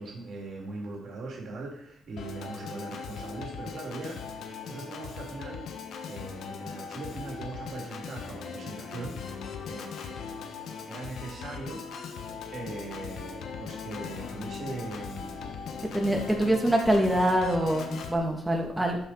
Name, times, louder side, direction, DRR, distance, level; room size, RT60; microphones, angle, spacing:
voice 1, 0.0-5.6 6.1-9.4 9.7-10.4 10.9-12.1 12.5-15.5 15.9-16.6, right 3 dB, 60° right, -2 dB, 2.6 m, -40 dB
Organ, 2.2-18.2, left 6 dB, 70° left, 1.1 m, -39 dB
voice 2, 15.9-19.0, right 1 dB, 10° right, 0 dB, 2.2 m, -25 dB
12.0 x 5.2 x 4.1 m, 0.70 s
cardioid pair, 90°, 0 cm